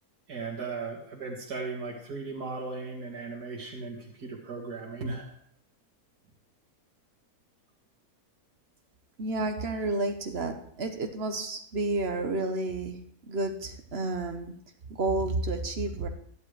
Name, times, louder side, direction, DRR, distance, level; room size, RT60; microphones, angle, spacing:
voice 1, 0.3-5.3, right 3 dB, 90° right, -3 dB, 2.5 m, -37 dB
voice 2, 9.2-13.0 13.2-14.5 15.0-16.1, right 2 dB, 45° right, 6 dB, 1.2 m, -30 dB
14.0 x 11.0 x 3.3 m, 0.66 s
omnidirectional pair, 1.6 m